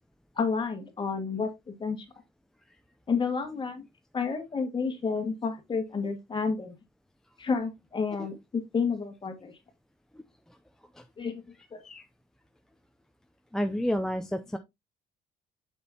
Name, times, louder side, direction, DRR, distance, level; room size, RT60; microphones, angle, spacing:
voice 1, 0.4-2.0 3.1-3.8 4.1-6.7 7.4-9.5 11.2-11.4 11.7-11.8, left 5 dB, 30° left, 1.8 m, -30 dB
voice 2, 13.5-14.6, equal, 5° left, 0.5 m, -30 dB
6.7 x 6.2 x 2.8 m
cardioid pair, 110°, 17 cm